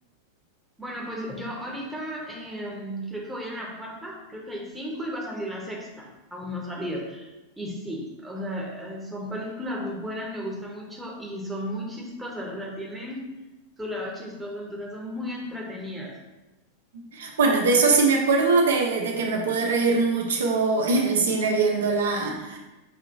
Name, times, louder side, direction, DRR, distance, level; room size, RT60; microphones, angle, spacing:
voice 1, 0.8-7.3 7.6-13.3 13.8-16.2, equal, 5° right, -2 dB, 0.9 m, -34 dB
voice 2, 16.9-22.6, right 4 dB, 60° right, 1 dB, 0.7 m, -22 dB
5.7 x 2.8 x 2.6 m, 1.1 s
figure-of-eight pair, 90°, 0 cm